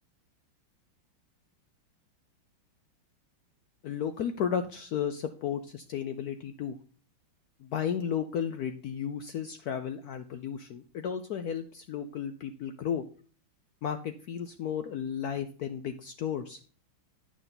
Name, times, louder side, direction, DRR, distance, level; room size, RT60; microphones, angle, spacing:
voice 1, 3.8-6.8 7.6-13.0 13.8-16.6, left 8 dB, 80° left, 9 dB, 0.8 m, -33 dB
9.2 x 6.3 x 3.8 m, 0.42 s
omnidirectional pair, 2.2 m